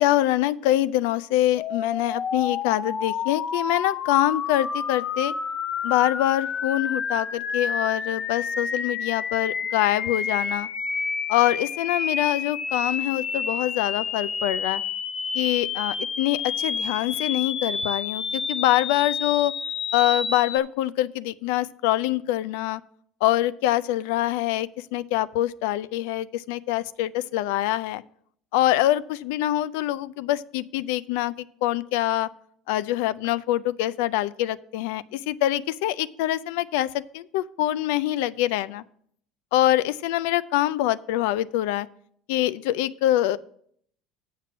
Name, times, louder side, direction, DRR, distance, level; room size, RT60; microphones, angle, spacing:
voice 1, 0.0-5.3 5.8-10.7 11.3-14.8 15.3-19.5 19.9-22.8 23.2-28.0 28.5-32.3 32.7-38.8 39.5-41.9 42.3-43.4, left 14 dB, 80° left, 17 dB, 0.3 m, -24 dB
sound 1, 1.6-20.6, left 6 dB, 35° left, 0.6 m, -29 dB
7.4 x 5.9 x 5.9 m, 0.65 s
supercardioid pair, 115°, 0 cm